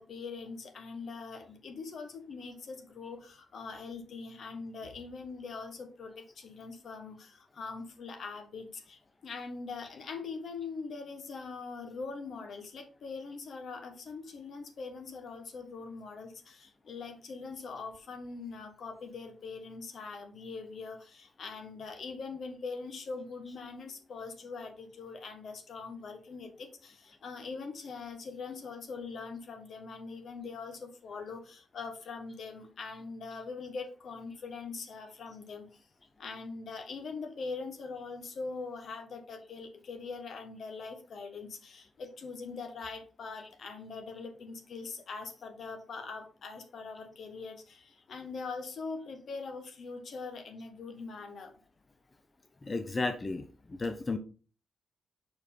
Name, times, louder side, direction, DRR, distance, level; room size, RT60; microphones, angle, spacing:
voice 1, 0.0-35.7 36.2-51.5, left 4 dB, 65° left, 6 dB, 1.3 m, -42 dB
voice 2, 52.6-54.2, left 3 dB, 30° left, 8 dB, 0.7 m, -34 dB
4.7 x 4.7 x 5.3 m, 0.37 s
supercardioid pair, 60°, 0 cm